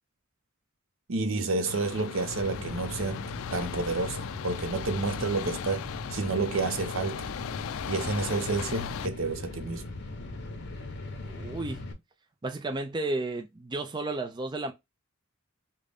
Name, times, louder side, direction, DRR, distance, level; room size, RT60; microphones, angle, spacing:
voice 1, 1.1-5.8 6.1-7.3 7.9-9.8, right 3 dB, 70° right, 0.6 m, -30 dB
sound 1, 1.7-9.1, left 9 dB, 80° left, 0.3 m, -38 dB
sound 2, 2.1-11.9, left 2 dB, 55° left, 0.8 m, -39 dB
voice 2, 11.2-11.9 12.4-14.7, right 2 dB, 20° right, 0.4 m, -33 dB
3.8 x 2.2 x 3.3 m
head